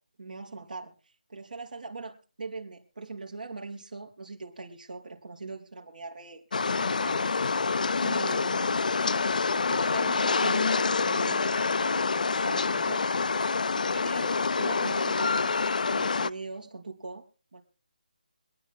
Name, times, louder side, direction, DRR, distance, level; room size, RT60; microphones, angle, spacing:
voice 1, 0.2-6.4 6.7-7.7 8.0-8.8 9.5-13.0 13.9-15.5 15.9-17.3 17.5-17.6, right 3 dB, 70° right, 0 dB, 4.4 m, -41 dB
sound 1, 6.5-16.3, left 4 dB, 65° left, 0.5 m, -27 dB
26.0 x 10.5 x 2.2 m, 0.36 s
figure-of-eight pair, 170°, 5 cm